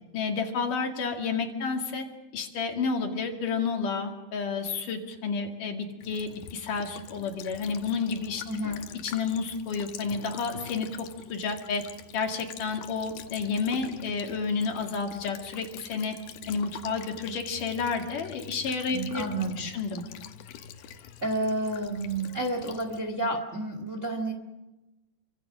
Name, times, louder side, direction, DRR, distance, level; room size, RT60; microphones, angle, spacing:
voice 1, 0.1-2.1 2.3-8.4 9.0-11.9 12.1-16.2 16.5-19.2 19.6-20.0, left 5 dB, 60° left, 3 dB, 3.6 m, -30 dB
Child speech kid speaking / Bird vocalization bird call bird song / Stream, 6.0-23.0, left 9 dB, 75° left, 3.0 m, -46 dB
voice 2, 8.5-8.8 18.9-19.7 20.8-20.9 21.2-24.3, right 1 dB, 30° right, 5 dB, 1.6 m, -30 dB
28.0 x 25.0 x 6.3 m, 1.1 s
omnidirectional pair, 4.5 m